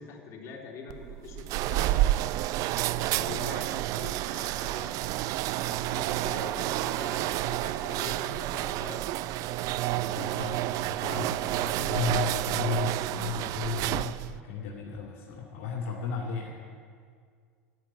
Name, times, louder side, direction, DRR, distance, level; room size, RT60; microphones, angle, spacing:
voice 1, 0.0-2.2 2.9-5.0 5.6-9.2, left 4 dB, 40° left, -2 dB, 3.3 m, -43 dB
sound 1, 0.9-14.4, right 15 dB, 50° right, 0.4 m, -30 dB
voice 2, 10.1-16.5, left 6 dB, 65° left, -3 dB, 2.5 m, -34 dB
12.0 x 10.0 x 9.8 m, 2.1 s
hypercardioid pair, 80°, 8 cm